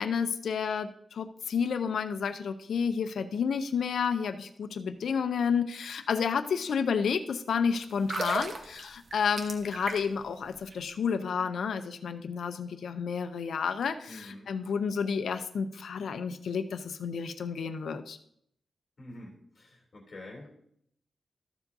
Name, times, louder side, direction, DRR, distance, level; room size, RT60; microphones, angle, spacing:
voice 1, 0.0-18.2, left 6 dB, 85° left, 9 dB, 0.6 m, -30 dB
sound 1, 7.9-10.3 10.6-10.7, right 2 dB, 50° right, 1.1 m, -35 dB
voice 2, 14.1-14.5 19.0-20.5, left 1 dB, 35° left, -1 dB, 3.1 m, -47 dB
13.5 x 7.1 x 2.7 m, 0.68 s
wide cardioid pair, 175°, 0 cm